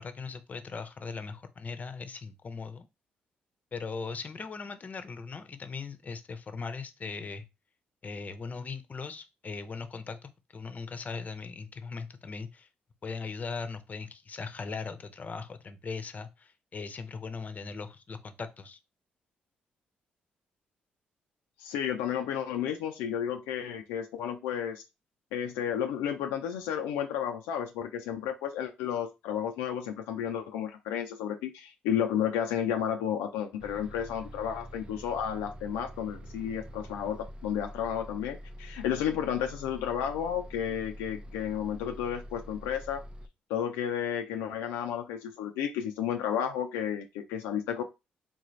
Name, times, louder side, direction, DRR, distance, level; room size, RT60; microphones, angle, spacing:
voice 1, 0.0-2.9 3.7-7.5 8.0-12.7 13.0-18.8, left 4 dB, 40° left, 0.6 m, -39 dB
voice 2, 21.6-24.8 25.3-43.0 43.5-47.8, left 9 dB, 85° left, 0.3 m, -32 dB
Bus, 33.6-43.3, equal, 25° right, 0.5 m, -45 dB
3.7 x 2.5 x 3.1 m
supercardioid pair, 55°, 4 cm